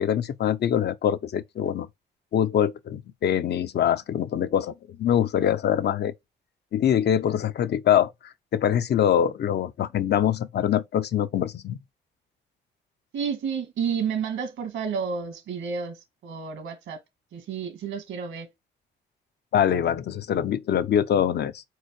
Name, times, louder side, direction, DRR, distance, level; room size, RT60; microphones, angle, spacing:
voice 1, 0.0-1.9 2.3-6.1 6.7-11.8 19.5-21.6, left 9 dB, 55° left, 0.7 m, -24 dB
voice 2, 13.1-17.0 17.3-18.5, right 6 dB, 75° right, 1.8 m, -31 dB
4.7 x 4.4 x 4.7 m
cardioid pair, 90°, 20 cm